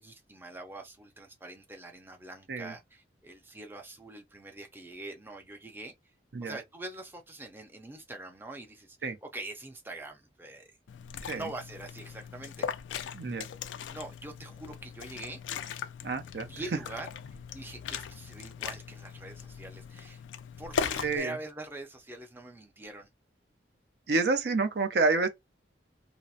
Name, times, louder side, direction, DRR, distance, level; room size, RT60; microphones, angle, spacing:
voice 1, 0.0-5.9 6.4-10.7 11.3-12.7 13.9-15.4 16.4-17.1 17.5-20.2 20.6-23.1, right 2 dB, 10° right, 0.5 m, -44 dB
Liquid, 10.9-21.2, left 7 dB, 85° left, 0.3 m, -39 dB
voice 2, 13.1-13.5 16.0-16.5 21.0-21.3 24.1-25.3, right 3 dB, 60° right, 0.5 m, -28 dB
2.8 x 2.0 x 2.4 m
head